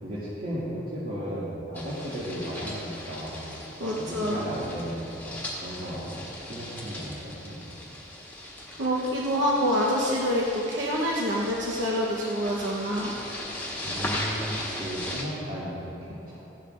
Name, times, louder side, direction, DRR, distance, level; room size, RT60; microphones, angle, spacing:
voice 1, 0.0-3.5 3.9-7.6 13.8-16.4, equal, 45° right, -11 dB, 2.1 m, -35 dB
sound 1, 1.7-15.2, left 1 dB, 10° left, 1.4 m, -38 dB
voice 2, 3.8-4.4 8.8-13.1, equal, 75° right, -4 dB, 1.0 m, -26 dB
15.5 x 11.5 x 2.6 m, 3.0 s
head